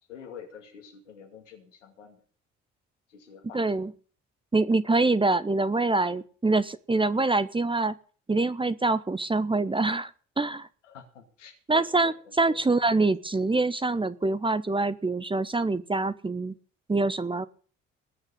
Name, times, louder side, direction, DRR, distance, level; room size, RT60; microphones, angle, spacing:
voice 1, 0.1-2.2 3.1-3.6 10.8-12.1 12.5-12.6, left 7 dB, 80° left, 3 dB, 2.4 m, -47 dB
voice 2, 3.5-3.9 4.5-8.0 8.3-10.1 10.4-10.7 11.7-16.5 16.9-17.5, right 3 dB, 15° right, 14 dB, 0.9 m, -25 dB
19.5 x 6.5 x 7.3 m, 0.42 s
figure-of-eight pair, 45°, 36 cm